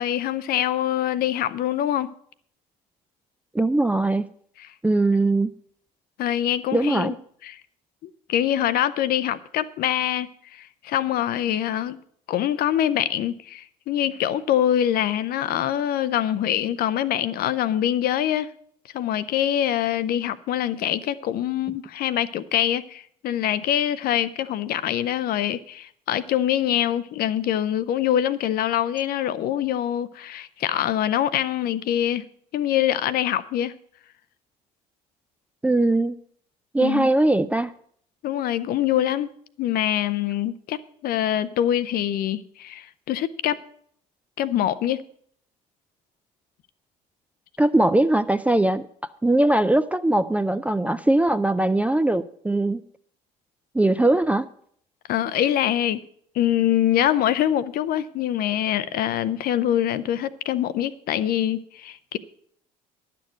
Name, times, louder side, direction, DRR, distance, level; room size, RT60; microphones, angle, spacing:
voice 1, 0.0-2.1 4.6-4.7 6.2-7.1 7.4-7.6 8.0-12.0 12.3-18.5 18.9-32.2 32.5-33.7 36.8-37.1 38.2-39.3 39.6-43.6 44.4-45.0 55.1-56.0 56.3-62.2, left 11 dB, 45° left, 0.6 m, -24 dB
voice 2, 3.5-4.2 4.8-5.5 6.7-7.1 35.6-36.1 36.7-37.7 47.6-48.8 49.2-52.8 53.7-54.5, right 2 dB, 5° right, 0.4 m, -20 dB
11.5 x 6.8 x 7.4 m
figure-of-eight pair, 55°, 21 cm